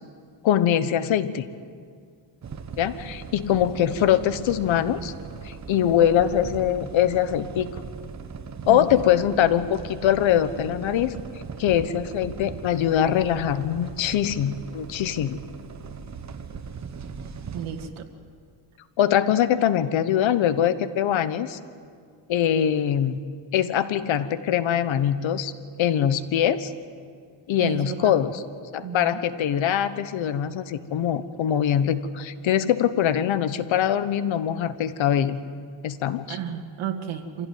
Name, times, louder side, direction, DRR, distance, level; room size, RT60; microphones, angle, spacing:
voice 1, 0.4-1.5 2.8-5.1 5.4-7.7 8.7-11.2 11.6-15.4 19.0-21.6 22.3-23.2 23.5-25.5 25.8-26.7 27.5-28.4 28.7-35.4 35.8-36.4, left 10 dB, 75° left, 13 dB, 1.2 m, -23 dB
sound 1, 2.4-17.9, right 5 dB, 35° right, 1.2 m, -39 dB
voice 2, 17.5-18.1 27.6-28.3 28.8-29.3 36.3-37.5, right 8 dB, 90° right, 4 dB, 2.1 m, -33 dB
25.5 x 16.5 x 9.5 m, 2.1 s
cardioid pair, 150°, 47 cm